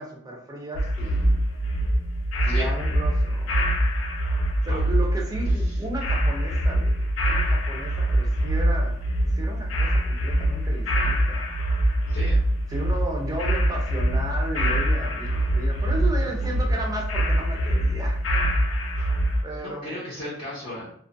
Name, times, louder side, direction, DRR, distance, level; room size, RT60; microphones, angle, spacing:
voice 1, 0.0-1.4 2.4-3.6 4.6-9.0 9.3-11.6 12.7-18.2 19.4-20.0, right 2 dB, 20° right, 0 dB, 0.4 m, -34 dB
sound 1, 0.8-19.4, right 1 dB, 80° left, 0.4 m, -24 dB
voice 2, 5.5-5.8 12.1-12.4 16.2-16.3 18.9-19.2 19.5-20.9, left 1 dB, 40° left, -9 dB, 0.8 m, -36 dB
2.4 x 2.2 x 2.5 m, 0.64 s
head